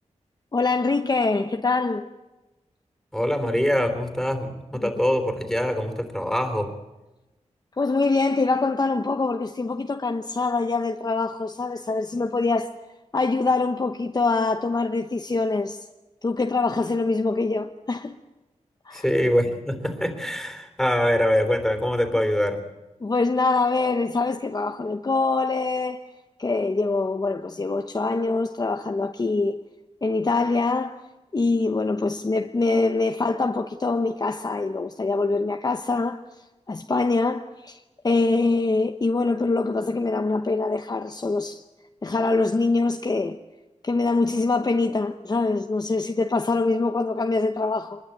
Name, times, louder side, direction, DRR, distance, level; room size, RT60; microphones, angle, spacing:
voice 1, 0.5-2.1 4.8-4.9 7.8-12.7 13.1-15.8 16.2-18.2 18.8-19.0 23.0-26.0 26.4-29.6 30.0-41.6 42.0-43.4 43.8-48.0, left 3 dB, 35° left, 0.9 m, -24 dB
voice 2, 3.1-6.7 18.9-22.6, equal, 5° left, 3.6 m, -24 dB
24.5 x 21.5 x 8.8 m
wide cardioid pair, 100°, 12 cm